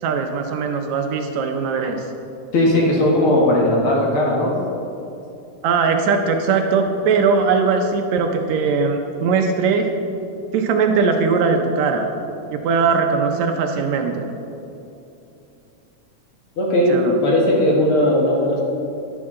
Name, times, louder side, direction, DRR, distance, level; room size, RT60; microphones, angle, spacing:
voice 1, 0.0-2.0 5.6-9.9 10.5-12.1 12.5-14.3 16.9-17.2, right 5 dB, 75° right, 4 dB, 1.9 m, -20 dB
voice 2, 2.5-4.5 16.6-18.6, left 1 dB, 55° left, -3 dB, 2.0 m, -17 dB
11.0 x 10.5 x 3.7 m, 2.8 s
omnidirectional pair, 3.4 m